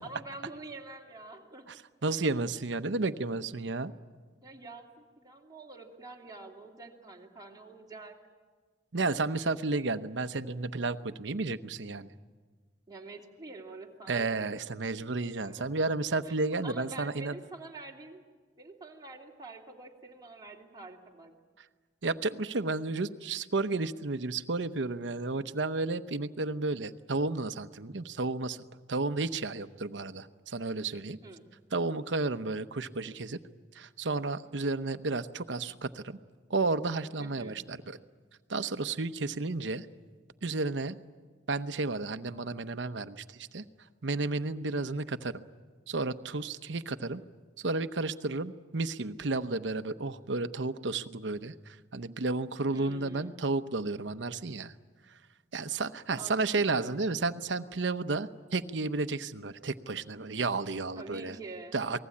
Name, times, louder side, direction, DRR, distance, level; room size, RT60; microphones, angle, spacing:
voice 1, 0.0-1.7 4.4-8.2 12.9-14.5 15.4-15.9 16.2-16.3 16.6-18.2 18.6-21.4 31.2-31.5 37.2-37.6 52.7-53.4 56.2-57.1 61.0-62.0, right 3 dB, 20° right, -1 dB, 2.8 m, -46 dB
voice 2, 1.7-3.9 8.9-12.1 14.1-17.4 22.0-28.6 28.9-31.2 31.7-33.4 33.7-36.2 36.5-38.0 38.5-39.9 40.4-41.0 41.5-43.6 44.0-45.4 45.9-47.2 47.6-54.7 55.1-55.2 55.5-61.4 61.7-62.0, right 3 dB, 80° right, 11 dB, 0.9 m, -32 dB
28.0 x 19.5 x 8.6 m, 1.5 s
head